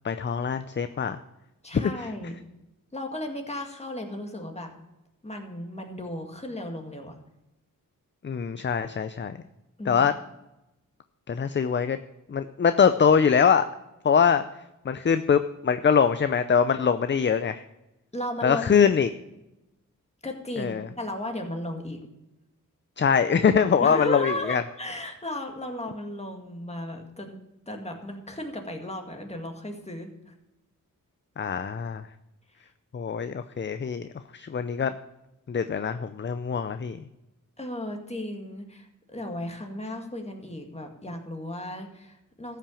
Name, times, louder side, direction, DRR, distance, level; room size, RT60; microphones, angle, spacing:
voice 1, 0.0-1.2 1.7-1.8 8.2-9.4 9.9-10.1 11.3-12.0 12.3-13.6 14.0-14.4 14.8-17.6 18.4-19.1 20.6-20.9 23.0-24.6 31.4-32.0 32.9-34.1 34.3-34.9 35.5-37.0, left 6 dB, 35° left, 11 dB, 0.5 m, -23 dB
voice 2, 1.6-2.4 2.9-4.7 5.2-7.2 9.8-10.1 18.1-18.9 20.2-22.1 23.8-27.4 27.7-30.3 37.6-42.6, left 1 dB, 20° left, 3 dB, 2.0 m, -35 dB
14.0 x 5.9 x 7.0 m, 0.94 s
wide cardioid pair, 80°, 33 cm